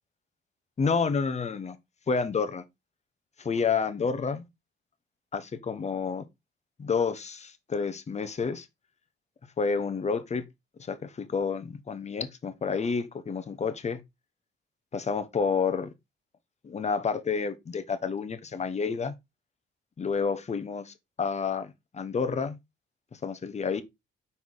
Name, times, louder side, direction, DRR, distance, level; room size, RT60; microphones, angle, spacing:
voice 1, 0.8-1.8 2.1-2.6 3.4-4.5 5.3-6.2 6.8-8.7 9.6-10.4 10.8-14.0 14.9-15.9 16.6-19.1 20.0-22.6 23.2-23.8, left 5 dB, 35° left, 1.0 m, -29 dB
5.6 x 4.7 x 3.8 m
cardioid pair, 90°, 20 cm